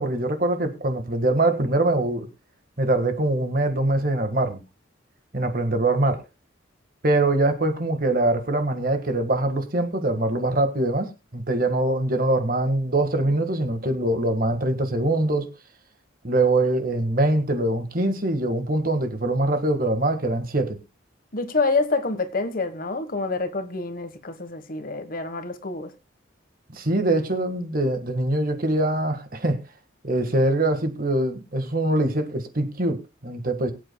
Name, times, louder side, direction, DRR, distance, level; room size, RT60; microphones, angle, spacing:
voice 1, 0.0-2.3 2.8-4.6 5.3-6.2 7.0-15.5 16.2-20.8 26.7-29.6 30.0-33.7, right 2 dB, 45° right, 1.7 m, -23 dB
voice 2, 21.3-25.9, left 3 dB, 45° left, 1.3 m, -27 dB
22.5 x 8.6 x 2.3 m
head